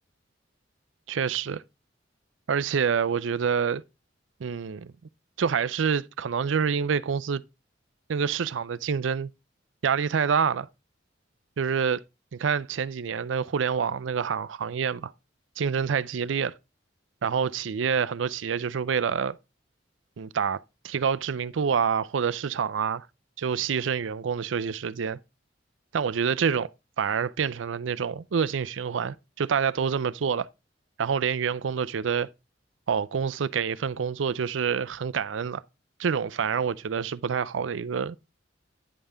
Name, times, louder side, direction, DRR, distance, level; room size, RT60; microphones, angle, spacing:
voice 1, 1.1-1.6 2.5-3.8 4.4-4.9 5.4-7.4 8.1-9.3 9.8-10.7 11.6-12.0 12.3-15.1 15.6-16.5 17.2-19.4 20.2-20.6 20.8-23.1 23.4-25.2 25.9-26.7 27.0-30.5 31.0-32.3 32.9-35.6 36.0-38.2, right 6 dB, 90° right, 0.5 m, -27 dB
9.9 x 5.5 x 3.4 m
head